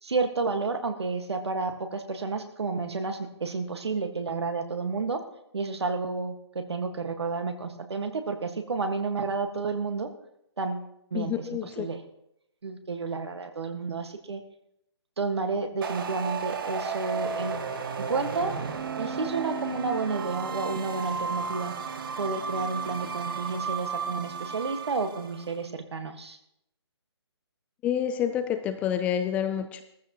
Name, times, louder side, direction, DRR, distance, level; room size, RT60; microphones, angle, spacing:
voice 1, 0.0-5.2 5.5-10.1 10.6-12.0 12.6-14.4 15.2-17.7 18.1-18.5 19.0-21.7 22.2-26.4, right 4 dB, 70° right, 6 dB, 1.7 m, -31 dB
voice 2, 11.1-11.9 27.8-29.8, left 9 dB, 10° left, 8 dB, 0.4 m, -28 dB
sound 1, 15.8-25.4, right 6 dB, 50° right, 1.4 m, -33 dB
19.0 x 14.5 x 3.0 m, 0.78 s
figure-of-eight pair, 145°, 14 cm